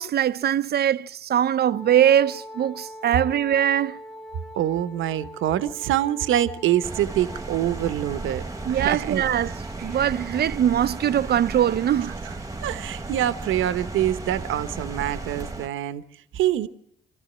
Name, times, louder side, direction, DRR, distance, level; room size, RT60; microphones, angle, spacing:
voice 1, 0.0-4.0 8.7-9.5 9.8-12.1, right 10 dB, 55° right, 0.7 m, -22 dB
Wind instrument woodwind instrument, 1.6-11.6, equal, 5° left, 0.9 m, -44 dB
voice 2, 4.5-8.4 8.7-9.2 12.6-16.0 16.3-16.7, right 12 dB, 85° right, 1.1 m, -25 dB
sound 1, 6.8-15.7, right 3 dB, 15° right, 1.6 m, -35 dB
25.5 x 14.0 x 8.7 m
cardioid pair, 90°, 20 cm